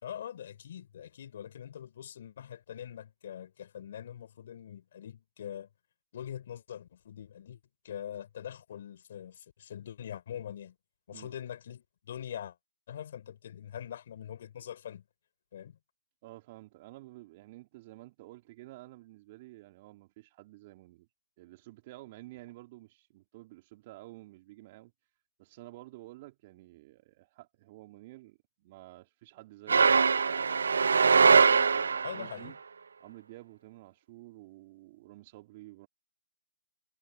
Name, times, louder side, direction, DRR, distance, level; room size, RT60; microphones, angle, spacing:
voice 1, 0.0-5.7 6.1-7.6 7.8-10.8 11.1-12.6 12.9-15.0 15.5-15.8 32.0-32.6, left 9 dB, 50° left, 3.9 m, -43 dB
voice 2, 16.2-21.1 21.4-24.9 25.4-30.6 31.0-32.6 33.0-35.9, right 18 dB, 30° right, 3.4 m, -51 dB
sound 1, 29.7-32.3, right 5 dB, 70° right, 0.6 m, -22 dB
hypercardioid pair, 145°, 0 cm